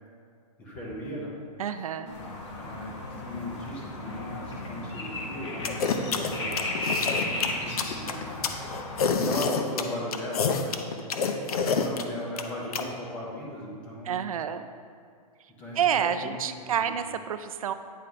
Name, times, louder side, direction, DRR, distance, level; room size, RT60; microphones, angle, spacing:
voice 1, 0.6-1.4 1.8-1.9 2.6-10.9 11.6-14.2 15.6-16.3 16.6-16.9, left 1 dB, 5° left, -4 dB, 0.4 m, -37 dB
voice 2, 1.6-2.2 14.0-14.7 15.8-17.7, right 8 dB, 60° right, 10 dB, 0.4 m, -28 dB
sound 1, 2.1-9.1, left 2 dB, 45° left, 1.3 m, -35 dB
sound 2, 5.6-12.8, left 5 dB, 65° left, 0.6 m, -27 dB
9.3 x 3.8 x 4.4 m, 2.2 s
hypercardioid pair, 180°, 20 cm